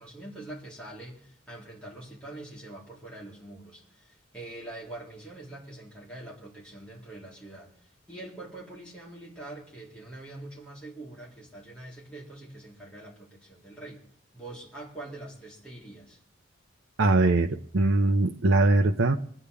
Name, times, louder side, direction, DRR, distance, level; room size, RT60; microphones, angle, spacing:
voice 1, 0.0-14.0 14.3-16.2, right 2 dB, 5° left, -7 dB, 3.8 m, -44 dB
voice 2, 17.0-19.2, right 2 dB, 75° right, 4 dB, 0.8 m, -22 dB
25.5 x 9.8 x 3.5 m, 0.63 s
head